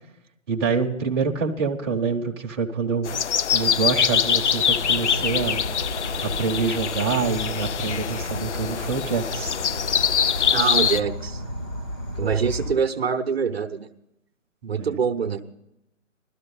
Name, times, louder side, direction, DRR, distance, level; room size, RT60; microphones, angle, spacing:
voice 1, 0.5-3.1 3.5-5.6 6.2-9.6 14.6-14.9, right 5 dB, 20° right, -2 dB, 0.8 m, -26 dB
sound 1, 3.0-11.0, left 8 dB, 65° left, 0.5 m, -24 dB
Insect / Frog, 4.7-12.8, equal, 20° left, 0.8 m, -33 dB
voice 2, 10.5-11.4 12.2-13.9 14.7-15.4, right 6 dB, 50° right, 7 dB, 0.9 m, -24 dB
16.0 x 13.0 x 5.5 m, 0.85 s
figure-of-eight pair, 155°, 39 cm